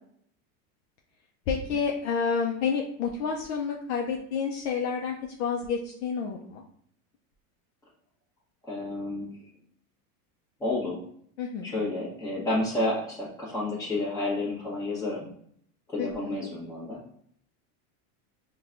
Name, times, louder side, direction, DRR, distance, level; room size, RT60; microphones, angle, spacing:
voice 1, 1.5-6.6 11.4-11.7 16.0-16.4, left 6 dB, 50° left, 0 dB, 0.5 m, -29 dB
voice 2, 8.6-9.3 10.6-11.0 11.6-15.3 15.9-17.0, left 2 dB, 10° left, -7 dB, 0.9 m, -30 dB
5.7 x 2.3 x 2.4 m, 0.65 s
supercardioid pair, 160°, 44 cm